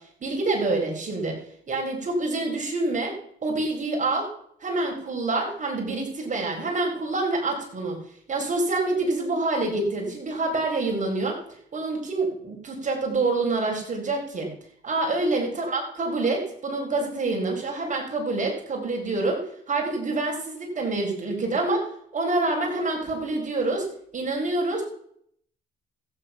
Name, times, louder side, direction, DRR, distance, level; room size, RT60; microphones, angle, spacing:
voice 1, 0.2-1.4 1.7-3.1 3.4-4.3 4.6-8.0 8.3-11.4 11.7-14.5 14.8-19.4 19.7-21.9 22.1-23.9 24.1-24.8, right 2 dB, 40° right, 0 dB, 4.2 m, -26 dB
14.0 x 9.1 x 5.6 m, 0.67 s
cardioid pair, 90°, 20 cm